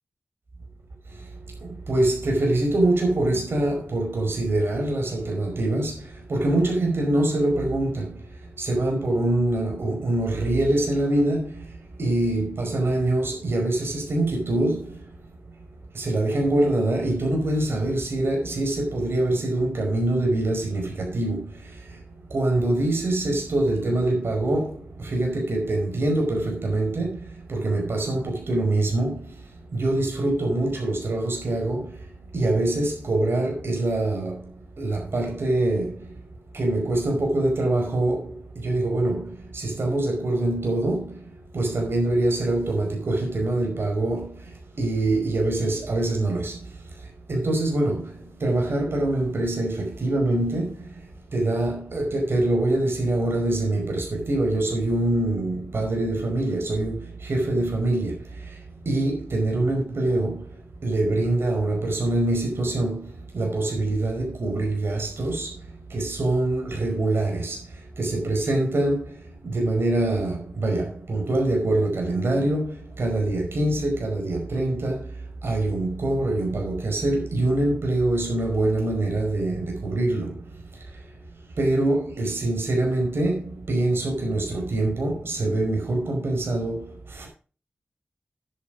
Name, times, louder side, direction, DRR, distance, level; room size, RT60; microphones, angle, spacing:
voice 1, 1.0-15.1 15.9-22.0 22.3-36.3 36.5-81.2 81.6-87.3, right 2 dB, 75° right, 5.1 m, -25 dB
10.5 x 8.7 x 5.1 m
cardioid pair, 45°, 4 cm